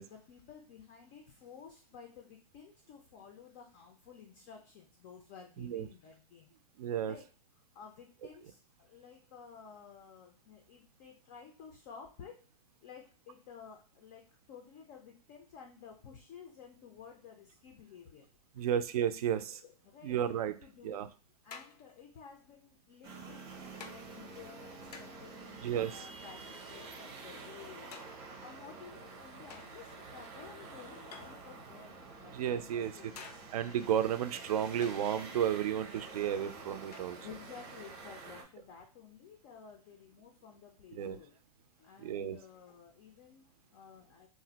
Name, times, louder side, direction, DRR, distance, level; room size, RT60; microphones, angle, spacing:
voice 1, 0.0-6.5 7.0-7.3 7.7-12.4 12.8-18.3 18.5-18.9 19.5-21.1 21.4-27.9 28.4-33.4 36.8-41.4 41.8-44.3, left 7 dB, 25° left, 2 dB, 0.3 m, -53 dB
voice 2, 6.8-7.1 18.6-19.6 20.0-20.5 20.8-21.1 25.6-26.1 32.3-32.9 33.5-37.2 41.0-41.2 42.0-42.4, right 9 dB, 70° right, 11 dB, 0.4 m, -32 dB
sound 1, 20.6-20.7 21.5-22.2 23.0-23.2 23.8-24.0 24.9-25.3 26.5-27.1 27.9-28.4 29.5-30.0 31.1-31.8 33.2-33.7 34.8-35.1 36.9-37.4, left 5 dB, 85° left, 0.6 m, -52 dB
sound 2, 23.0-38.4, right 4 dB, 30° right, 0.6 m, -48 dB
2.5 x 2.0 x 3.9 m, 0.37 s
hypercardioid pair, 160°, 20 cm